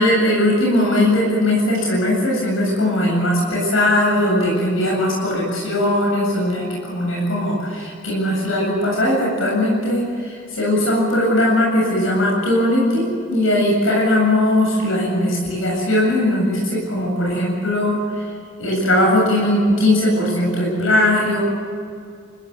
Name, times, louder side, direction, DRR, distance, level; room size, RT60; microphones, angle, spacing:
voice 1, 0.0-18.2 18.6-21.4, left 1 dB, 80° left, -3 dB, 8.0 m, -19 dB
29.5 x 16.0 x 8.4 m, 2.2 s
head